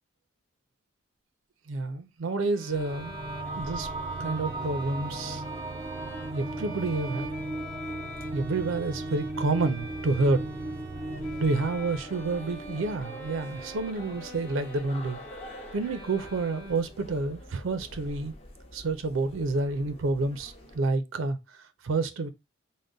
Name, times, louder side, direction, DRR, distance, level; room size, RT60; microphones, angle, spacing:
voice 1, 1.7-3.2 3.6-3.9 4.2-5.4 6.3-7.3 8.3-10.5 11.4-15.2 15.7-18.3 18.7-22.3, right 3 dB, 85° right, 0.5 m, -29 dB
Bowed string instrument, 2.5-17.2, equal, 10° left, 0.8 m, -45 dB
sound 1, 2.7-20.8, left 1 dB, 30° left, 0.6 m, -47 dB
sound 2, 2.7-13.6, right 2 dB, 25° right, 0.3 m, -37 dB
3.7 x 2.1 x 3.8 m
head